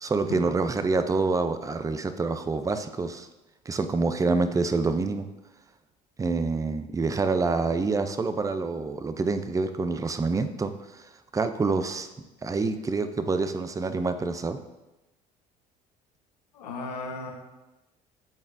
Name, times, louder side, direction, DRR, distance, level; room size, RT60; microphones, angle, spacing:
voice 1, 0.0-3.3 3.7-5.3 6.2-12.1 12.4-14.6, right 3 dB, 15° right, 10 dB, 0.5 m, -27 dB
voice 2, 16.5-17.3, left 3 dB, 85° left, 1 dB, 1.2 m, -35 dB
10.5 x 4.0 x 2.6 m, 1.0 s
hypercardioid pair, 65°, 20 cm